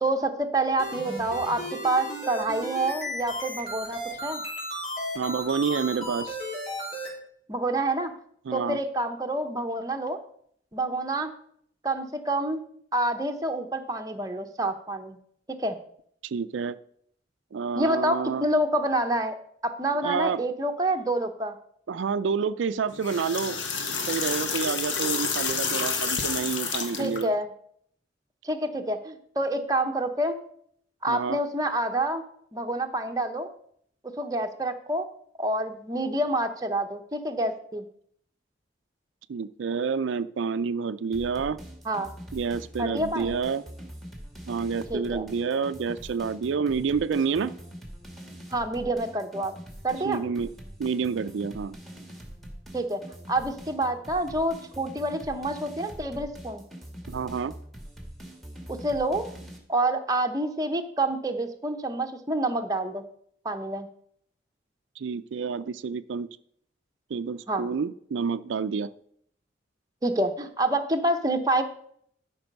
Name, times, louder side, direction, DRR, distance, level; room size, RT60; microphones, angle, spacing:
voice 1, 0.0-4.4 7.5-8.1 8.5-10.2 10.7-11.3 11.8-12.6 12.9-15.2 15.6-15.8 17.7-19.3 19.6-21.5 27.0-27.5 28.4-30.4 31.0-32.2 32.5-33.5 34.2-35.1 35.4-37.8 41.8-42.1 42.8-43.3 44.9-45.3 48.5-49.5 49.8-50.2 52.7-53.0 53.3-56.6 58.7-59.3 59.7-63.0 63.4-63.9 67.5-67.6 70.0-71.6, right 1 dB, 20° right, 5 dB, 0.8 m, -27 dB
sound 1, 0.8-7.1, equal, 45° left, 4.0 m, -35 dB
voice 2, 5.1-6.4 8.5-8.8 16.2-16.8 17.5-18.4 20.0-20.4 21.9-23.6 24.0-27.3 31.1-31.4 39.3-41.6 42.3-43.6 44.5-47.5 50.0-50.5 50.8-51.8 57.1-57.5 65.0-66.3 67.1-68.9, right 5 dB, 90° right, 12 dB, 0.4 m, -28 dB
sound 2, 22.9-27.2, left 5 dB, 80° left, 1.3 m, -29 dB
sound 3, 41.1-59.6, equal, ahead, 1.6 m, -43 dB
12.5 x 5.4 x 5.3 m, 0.65 s
head